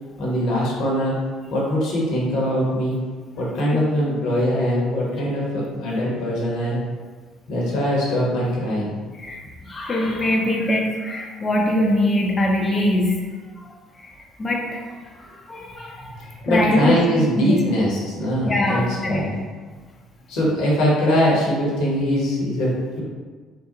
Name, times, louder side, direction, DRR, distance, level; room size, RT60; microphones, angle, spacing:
voice 1, 0.2-1.2 1.5-3.0 3.4-6.8 7.5-8.9 16.4-19.4 20.3-23.0, equal, 60° left, -5 dB, 1.0 m, -22 dB
voice 2, 9.2-13.2 13.6-13.7 14.0-14.1 14.4-14.8 15.2-17.6 18.5-19.2, left 1 dB, 30° left, -1 dB, 0.6 m, -23 dB
3.8 x 2.1 x 2.9 m, 1.4 s
figure-of-eight pair, 55°, 0 cm